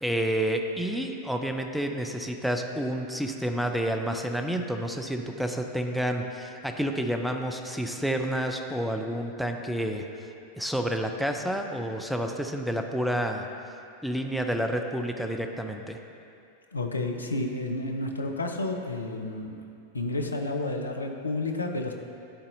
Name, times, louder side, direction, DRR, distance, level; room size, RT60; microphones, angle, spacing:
voice 1, 0.0-10.3 10.6-13.5 14.0-16.0, right 1 dB, ahead, 4 dB, 0.4 m, -29 dB
voice 2, 16.7-19.6 19.9-21.9, left 2 dB, 80° left, 3 dB, 0.5 m, -31 dB
11.5 x 4.1 x 2.6 m, 2.6 s
figure-of-eight pair, 90°, 0 cm